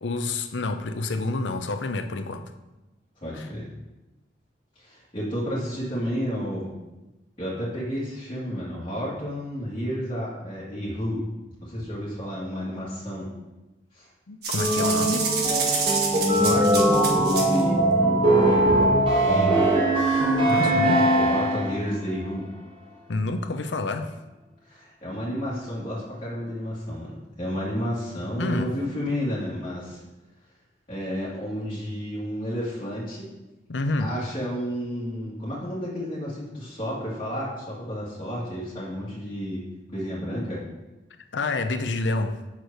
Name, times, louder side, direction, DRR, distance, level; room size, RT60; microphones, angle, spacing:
voice 1, 0.0-2.4 3.3-3.5 14.3-15.3 20.4-21.1 23.1-24.1 28.4-28.7 33.7-34.1 41.3-42.3, left 2 dB, 80° left, 7 dB, 0.7 m, -28 dB
voice 2, 3.2-3.7 4.8-6.7 7.4-11.2 11.6-13.3 13.9-14.1 16.3-19.6 20.6-22.5 24.6-30.0 30.9-33.3 34.0-39.6 39.9-40.6, equal, 30° left, -10 dB, 1.8 m, -31 dB
sound 1, 14.4-17.6, right 4 dB, 60° right, 1.5 m, -28 dB
sound 2, 14.6-21.9, right 1 dB, 35° right, 2.8 m, -21 dB
6.0 x 4.8 x 6.6 m, 1.1 s
head